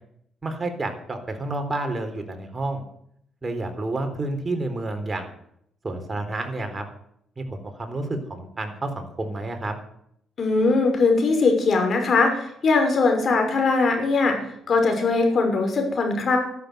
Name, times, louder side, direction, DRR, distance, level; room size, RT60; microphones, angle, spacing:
voice 1, 0.4-2.8 3.4-5.3 5.8-6.8 7.4-9.7, right 2 dB, 25° right, 6 dB, 3.9 m, -30 dB
voice 2, 10.4-14.4 14.7-16.4, left 3 dB, 50° left, 4 dB, 5.8 m, -20 dB
13.5 x 12.0 x 8.1 m, 0.71 s
cardioid pair, 90°, 0 cm